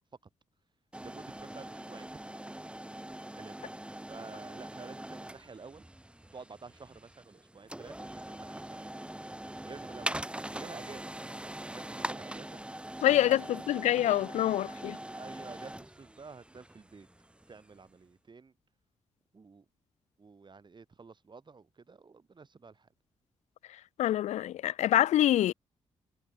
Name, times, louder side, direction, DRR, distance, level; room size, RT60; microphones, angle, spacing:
sound 1, 0.9-17.8, right 1 dB, 10° right, 4.7 m, -42 dB
voice 1, 1.0-2.1 3.4-3.6 4.1-5.9 6.3-8.9 9.6-11.1 11.7-12.6 13.0-13.8 15.1-17.1 17.5-18.5 19.3-19.6 20.2-22.9, right 4 dB, 40° right, 7.6 m, -50 dB
voice 2, 13.0-15.0 24.0-25.5, left 13 dB, 80° left, 0.5 m, -26 dB
cardioid pair, 65°, 12 cm